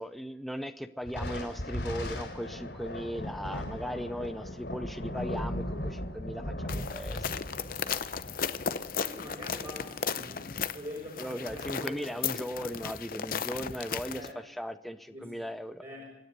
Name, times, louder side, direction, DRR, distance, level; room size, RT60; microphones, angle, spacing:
voice 1, 0.0-7.3 11.2-15.8, equal, ahead, 9 dB, 0.6 m, -38 dB
Thunder, 1.1-9.8, left 1 dB, 80° left, 3.9 m, -38 dB
sound 1, 6.7-14.3, left 7 dB, 50° left, 0.7 m, -35 dB
voice 2, 9.0-12.4 14.0-14.4 15.1-15.4 15.8-16.2, left 1 dB, 40° right, -5 dB, 5.1 m, -44 dB
26.0 x 9.9 x 5.3 m, 0.95 s
head